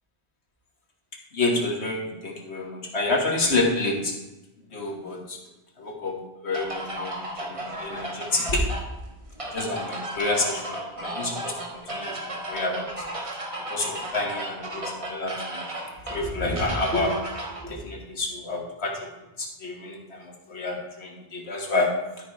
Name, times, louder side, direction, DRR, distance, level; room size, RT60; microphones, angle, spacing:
voice 1, 1.3-4.1 4.7-5.4 5.8-6.2 6.4-8.7 9.4-13.1 13.7-15.7 16.1-17.2 17.5-19.1 19.4-21.9, left 2 dB, 80° left, 0 dB, 1.8 m, -28 dB
sound 1, 6.5-17.6, right 1 dB, 30° right, 1.2 m, -34 dB
12.5 x 4.8 x 4.2 m, 0.98 s
omnidirectional pair, 1.1 m